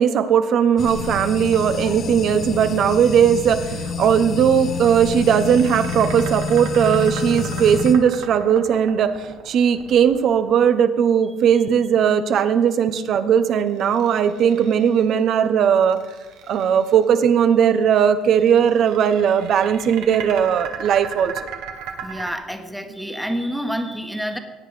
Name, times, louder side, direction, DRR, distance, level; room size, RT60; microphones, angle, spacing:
voice 1, 0.0-9.1 9.5-16.0 16.5-21.3, right 8 dB, 55° right, 11 dB, 0.9 m, -18 dB
sound 1, 0.8-7.9, left 5 dB, 50° left, 1.4 m, -28 dB
sound 2, 4.6-10.8 13.6-15.2 15.7-17.0 18.3-22.3, right 7 dB, 80° right, 1.6 m, -37 dB
voice 2, 22.0-24.4, equal, ahead, 5 dB, 1.4 m, -28 dB
17.5 x 8.9 x 5.0 m, 1.3 s
cardioid pair, 105°, 0 cm